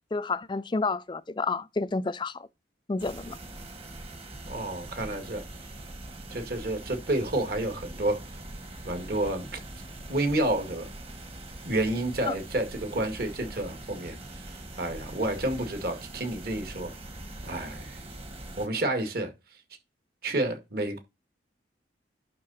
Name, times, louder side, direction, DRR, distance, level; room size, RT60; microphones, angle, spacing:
voice 1, 0.1-2.5 2.9-3.4 12.3-12.4, left 3 dB, 25° left, 0.4 m, -30 dB
sound 1, 3.0-18.7, right 1 dB, 30° right, 1.5 m, -43 dB
voice 2, 4.5-5.4 6.3-8.2 8.8-9.5 10.1-10.9 11.6-14.2 14.8-16.9 17.4-18.0 18.6-19.3 20.2-21.0, right 1 dB, 50° right, 2.1 m, -29 dB
11.5 x 3.8 x 4.2 m
head